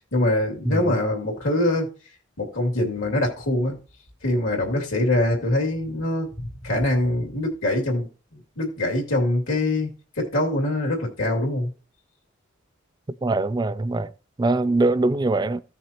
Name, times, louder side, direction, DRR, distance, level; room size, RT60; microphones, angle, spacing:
voice 1, 0.1-1.9 2.4-3.8 4.2-8.1 8.6-11.7, left 1 dB, 90° left, 2.6 m, -24 dB
voice 2, 13.2-14.1 14.4-15.6, right 2 dB, 20° right, 0.3 m, -22 dB
15.0 x 6.1 x 2.9 m
head